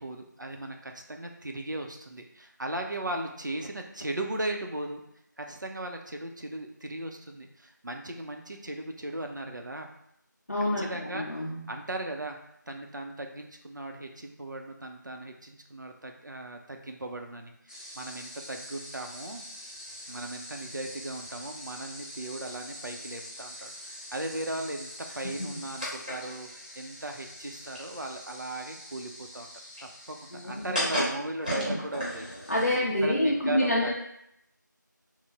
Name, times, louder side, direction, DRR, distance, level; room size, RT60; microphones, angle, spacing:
voice 1, 0.0-5.0 5.4-9.9 10.6-12.4 12.7-19.4 20.1-26.5 26.8-29.5 29.8-32.3 33.0-33.9, right 1 dB, 70° right, 3 dB, 0.5 m, -37 dB
voice 2, 10.5-11.6 25.2-25.5 30.3-30.7 31.6-31.7 32.5-33.9, left 1 dB, 50° left, -5 dB, 0.5 m, -27 dB
sound 1, 17.7-33.0, equal, 25° right, 0.8 m, -39 dB
3.1 x 2.1 x 3.4 m, 0.77 s
figure-of-eight pair, 180°, 10 cm